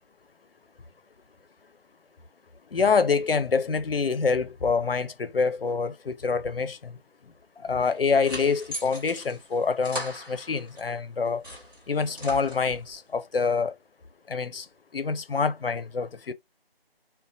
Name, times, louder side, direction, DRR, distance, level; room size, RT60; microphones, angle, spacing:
voice 1, 2.7-7.0 7.6-11.4 11.9-13.7 14.3-14.7 14.9-16.3, left 5 dB, 65° left, 0.6 m, -26 dB
sound 1, 7.8-10.9 11.3-13.0, equal, 20° right, 1.0 m, -39 dB
2.7 x 2.1 x 3.9 m
figure-of-eight pair, 165°, 31 cm